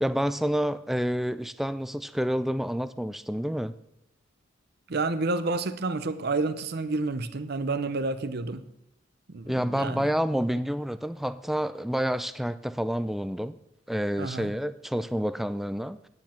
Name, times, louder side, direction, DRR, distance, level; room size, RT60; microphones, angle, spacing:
voice 1, 0.0-3.8 9.5-13.6 13.9-16.1, equal, ahead, 0.4 m, -28 dB
voice 2, 4.9-8.7 9.3-10.1 14.2-14.5, right 3 dB, 55° right, 0.7 m, -29 dB
9.8 x 9.3 x 4.4 m
head